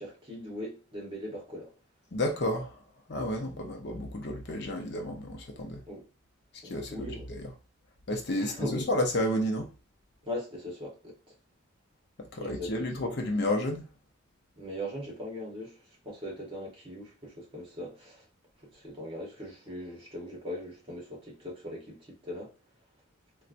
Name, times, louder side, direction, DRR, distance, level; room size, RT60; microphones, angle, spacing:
voice 1, 0.0-1.7 5.9-6.1 6.6-7.3 8.4-8.8 10.2-11.2 12.4-12.9 14.6-15.8 16.0-18.2 18.7-22.5, equal, 25° right, 1.1 m, -40 dB
voice 2, 2.1-2.8 3.1-5.8 6.6-7.5 8.1-9.7 12.2-13.8, left 1 dB, 55° left, 0.6 m, -31 dB
4.1 x 2.2 x 2.5 m
head